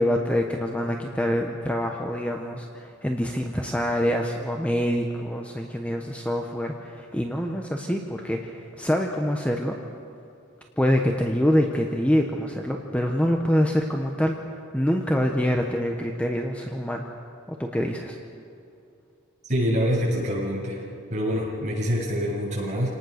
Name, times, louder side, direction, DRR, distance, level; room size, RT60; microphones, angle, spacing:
voice 1, 0.0-9.8 10.8-14.4 14.7-17.1 17.6-18.2, equal, 5° left, 2 dB, 1.1 m, -25 dB
voice 2, 19.5-20.8 21.1-22.9, equal, 35° right, -4 dB, 7.6 m, -25 dB
27.5 x 19.0 x 6.6 m, 2.5 s
head